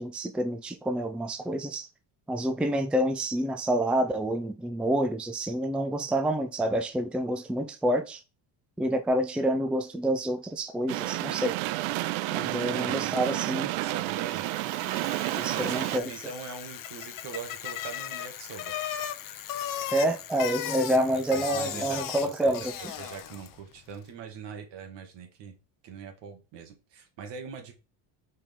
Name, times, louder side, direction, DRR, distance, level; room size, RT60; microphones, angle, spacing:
voice 1, 0.0-1.9 2.3-8.2 8.8-11.6 12.3-13.7 15.4-16.1 19.9-22.9, right 1 dB, 5° right, 0.5 m, -28 dB
sound 1, 10.9-16.0, right 18 dB, 90° right, 0.5 m, -30 dB
voice 2, 12.7-14.5 15.5-18.8 21.1-25.6 25.8-27.8, right 6 dB, 70° right, 1.9 m, -42 dB
Bicycle, 14.2-23.6, left 10 dB, 50° left, 0.7 m, -37 dB
6.1 x 4.3 x 3.7 m
cardioid pair, 125°, 43 cm